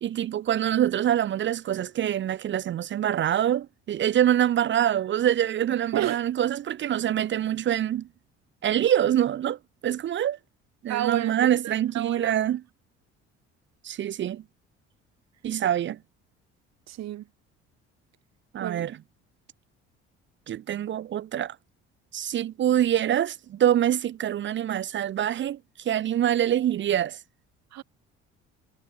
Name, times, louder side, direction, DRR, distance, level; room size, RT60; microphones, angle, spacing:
voice 1, 0.0-8.1 8.6-10.4 10.8-12.6 13.8-14.4 15.4-16.0 18.5-19.0 20.5-21.6 22.1-25.6 25.8-27.2, right 11 dB, 40° right, 0.5 m, -25 dB
voice 2, 10.9-11.4 11.6-12.4 16.9-17.2 18.6-18.9 27.7-27.8, right 13 dB, 55° right, 1.3 m, -31 dB
supercardioid pair, 65°, 31 cm